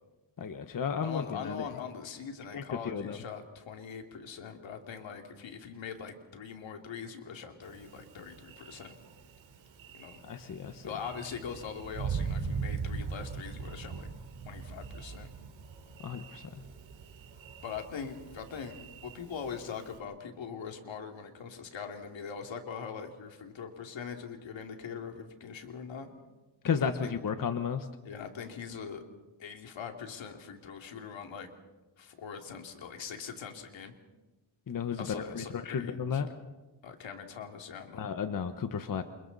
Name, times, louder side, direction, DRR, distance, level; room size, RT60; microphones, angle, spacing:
voice 1, 0.4-1.7 2.5-3.2 10.3-10.8 16.0-16.4 26.6-27.9 34.7-36.3 37.9-39.0, left 6 dB, 45° left, 8 dB, 1.3 m, -33 dB
voice 2, 1.0-9.0 9.9-10.2 10.8-14.1 14.5-15.3 17.6-26.1 26.8-27.1 28.0-29.0 29.4-31.5 32.0-33.9 34.9-36.3 36.8-38.1, left 6 dB, 80° left, 4 dB, 2.9 m, -42 dB
Thunder, 7.6-20.0, right 5 dB, 90° right, 3.4 m, -41 dB
28.5 x 28.0 x 4.2 m, 1.1 s
cardioid pair, 115°, 45 cm